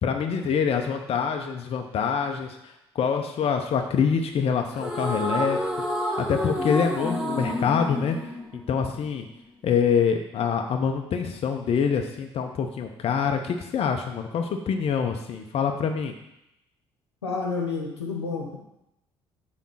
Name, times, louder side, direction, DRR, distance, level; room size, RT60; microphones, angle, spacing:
voice 1, 0.0-5.6 6.2-8.2 8.5-9.3 9.6-16.1, left 6 dB, 45° left, 4 dB, 0.9 m, -25 dB
sound 1, 4.7-9.2, equal, 5° right, 1.9 m, -29 dB
voice 2, 17.2-18.6, left 4 dB, 90° left, 0 dB, 1.1 m, -29 dB
7.2 x 4.3 x 5.8 m, 0.84 s
figure-of-eight pair, 50°, 14 cm